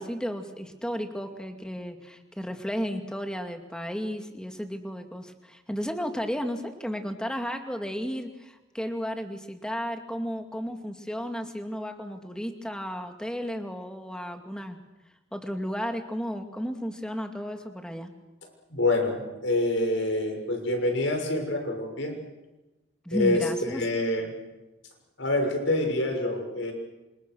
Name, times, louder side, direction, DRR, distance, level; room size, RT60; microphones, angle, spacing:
voice 1, 0.0-14.8 15.3-18.1 23.0-23.8, equal, 5° left, 5 dB, 2.3 m, -33 dB
voice 2, 18.7-22.1 23.1-24.3 25.2-26.7, left 2 dB, 90° left, 3 dB, 6.7 m, -26 dB
28.5 x 27.0 x 6.4 m, 1.1 s
head